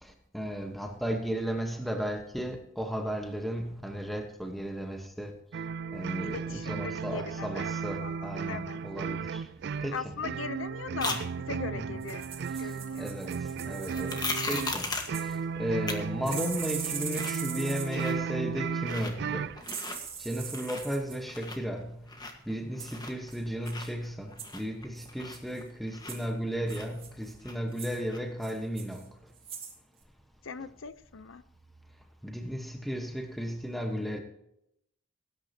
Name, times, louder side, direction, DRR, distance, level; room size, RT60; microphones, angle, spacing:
voice 1, 0.0-5.4 5.9-9.5 9.8-10.1 11.1-11.2 11.7-12.0 12.5-19.5 20.2-22.1 22.4-29.1 32.2-34.2, equal, ahead, 1.2 m, -35 dB
sound 1, 5.5-19.6, right 6 dB, 55° right, 0.3 m, -35 dB
voice 2, 6.2-7.7 8.0-8.8 9.9-12.2 12.6-13.1 30.4-31.4, left 5 dB, 85° left, 0.7 m, -39 dB
sound 2, 11.0-11.2 13.9-15.2 15.9-16.0 16.4-16.5 16.8-17.4 17.7-18.3 18.8-19.1 19.5-20.0 20.4-21.0 21.3-23.3 23.6-26.4 26.7-27.7 28.1-28.2, left 3 dB, 20° left, 1.5 m, -37 dB
sound 3, 12.0-15.4 16.3-18.1 19.6-21.2 22.8-23.0 23.3-23.4 23.7-23.9 24.4-24.6 25.0-25.6 26.1-26.3 26.7-27.3 27.7-28.0 28.4-29.1 29.4-29.8 30.0-30.1, right 7 dB, 30° right, 2.5 m, -41 dB
18.5 x 9.9 x 2.9 m
head